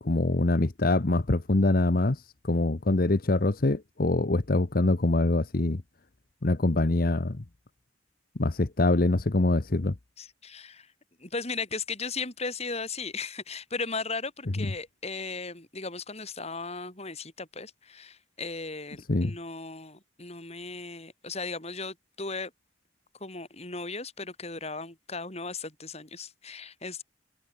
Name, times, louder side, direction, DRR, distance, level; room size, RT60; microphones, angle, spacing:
voice 1, 0.0-5.8 6.4-7.4 8.3-9.9 14.6-14.7 19.1-19.4, left 2 dB, 50° left, 0.9 m, -24 dB
voice 2, 10.2-10.9 11.2-22.5 23.2-27.0, left 4 dB, 35° left, 6.7 m, -36 dB
head